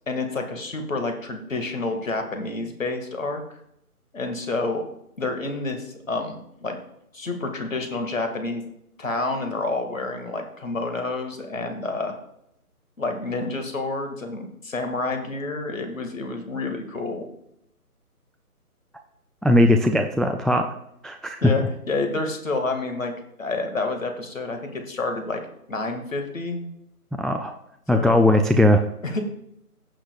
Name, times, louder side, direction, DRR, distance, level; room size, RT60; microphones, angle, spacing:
voice 1, 0.1-3.4 4.1-4.8 5.2-6.8 7.1-8.6 9.0-12.1 13.0-17.3 21.4-23.1 23.4-25.4 25.7-26.6 27.9-28.2 29.0-29.2, left 3 dB, 55° left, 5 dB, 1.9 m, -29 dB
voice 2, 19.4-20.7 21.0-21.4 27.2-27.5 27.9-28.8, left 1 dB, ahead, 5 dB, 0.3 m, -19 dB
16.0 x 7.3 x 2.3 m, 0.76 s
figure-of-eight pair, 165°, 46 cm